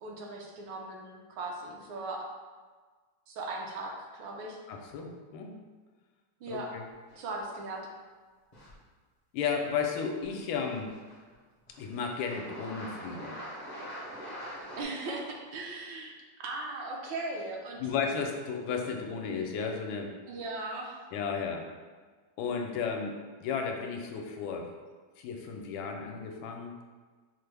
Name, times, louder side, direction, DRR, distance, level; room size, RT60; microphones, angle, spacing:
voice 1, 0.0-2.2 3.3-4.6 6.4-6.7 7.2-7.9 14.8-16.1 16.4-17.9 20.3-21.0, right 2 dB, 75° right, -1 dB, 1.4 m, -38 dB
voice 2, 4.7-5.5 6.5-6.8 9.3-10.9 11.8-13.4 17.8-20.1 21.1-21.7 22.4-24.7 25.2-26.7, left 6 dB, 80° left, 2 dB, 1.3 m, -34 dB
sound 1, 7.1-7.6 8.5-8.8 9.8-9.9 10.2-11.3 11.7-14.8, equal, 50° left, 0.5 m, -44 dB
5.8 x 2.0 x 3.3 m, 1.4 s
omnidirectional pair, 2.2 m